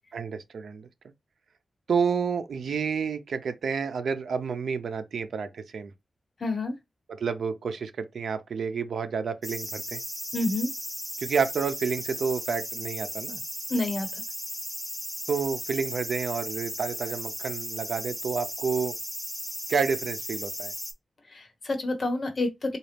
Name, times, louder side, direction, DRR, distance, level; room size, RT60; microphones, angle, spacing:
voice 1, 0.1-0.9 1.9-5.9 7.1-10.0 11.2-13.4 15.3-18.9 19.7-20.7, right 5 dB, 80° right, 0.5 m, -29 dB
voice 2, 6.4-6.7 10.3-10.7 13.7-14.1 21.3-22.8, left 2 dB, 45° left, 1.2 m, -28 dB
sound 1, 9.4-20.9, equal, ahead, 1.1 m, -36 dB
4.0 x 2.4 x 3.3 m
wide cardioid pair, 120°, 0 cm